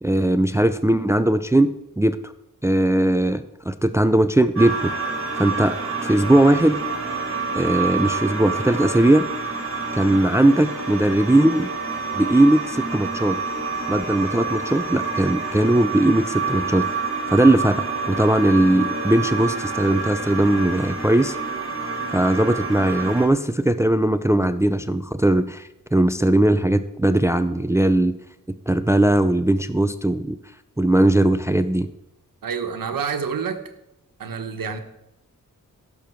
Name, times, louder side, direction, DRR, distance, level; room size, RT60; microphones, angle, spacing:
voice 1, 0.0-2.2 2.6-4.9 5.3-6.8 7.6-9.3 9.9-11.7 12.1-13.4 13.9-16.9 17.3-21.4 22.1-28.2 28.7-30.4 30.8-31.9, right 1 dB, 10° right, 11 dB, 0.5 m, -19 dB
sound 1, 4.6-23.3, right 4 dB, 40° right, 2.6 m, -28 dB
voice 2, 32.4-33.6 34.2-34.8, right 6 dB, 90° right, 7 dB, 1.3 m, -28 dB
16.0 x 6.8 x 4.6 m, 0.86 s
cardioid pair, 65°, 33 cm